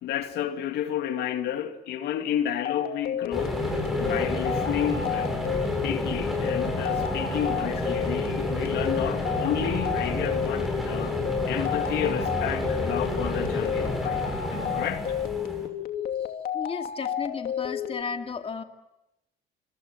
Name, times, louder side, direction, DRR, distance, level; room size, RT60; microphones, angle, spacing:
voice 1, 0.0-3.6 4.0-5.5 5.8-11.2 11.5-14.2 14.5-15.2, left 10 dB, 75° left, 2.3 m, -31 dB
sound 1, 2.5-18.0, left 9 dB, 60° left, 2.8 m, -32 dB
sound 2, 3.3-15.7, equal, ahead, 7.8 m, -30 dB
voice 2, 16.5-18.6, left 5 dB, 35° left, 2.4 m, -34 dB
26.0 x 25.5 x 9.0 m
cardioid pair, 110°, 17 cm